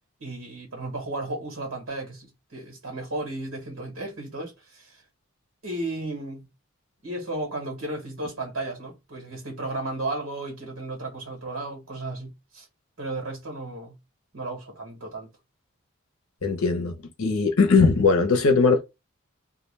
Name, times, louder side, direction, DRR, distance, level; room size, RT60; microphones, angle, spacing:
voice 1, 0.2-5.0 5.6-6.5 7.0-12.7 13.0-14.0 14.3-15.3, right 2 dB, 70° right, 1.2 m, -34 dB
voice 2, 16.4-18.8, left 4 dB, 75° left, 0.7 m, -20 dB
2.3 x 2.2 x 3.1 m
head